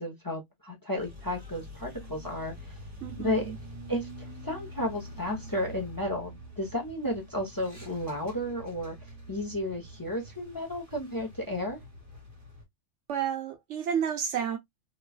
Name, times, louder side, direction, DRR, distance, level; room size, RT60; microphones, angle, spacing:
voice 1, 0.0-2.8 3.2-3.5 3.9-11.8, left 1 dB, 20° left, 0.7 m, -33 dB
sound 1, 1.0-12.6, equal, 45° right, 1.4 m, -46 dB
voice 2, 3.0-3.5 13.1-14.6, right 8 dB, 75° right, 1.0 m, -31 dB
3.0 x 2.3 x 2.3 m
omnidirectional pair, 1.3 m